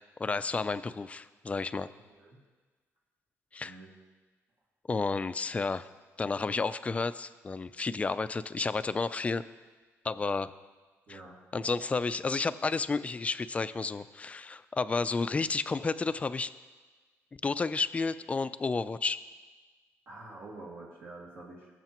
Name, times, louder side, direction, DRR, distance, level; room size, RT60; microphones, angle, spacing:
voice 1, 0.2-1.9 3.5-3.8 4.9-5.9 6.2-9.4 10.0-10.5 11.1-11.2 11.5-16.5 17.4-19.2, left 4 dB, 25° left, 14 dB, 0.4 m, -31 dB
voice 2, 11.1-11.4 20.1-21.7, right 2 dB, 55° right, -4 dB, 1.9 m, -47 dB
18.5 x 7.6 x 3.0 m, 1.3 s
cardioid pair, 105°, 5 cm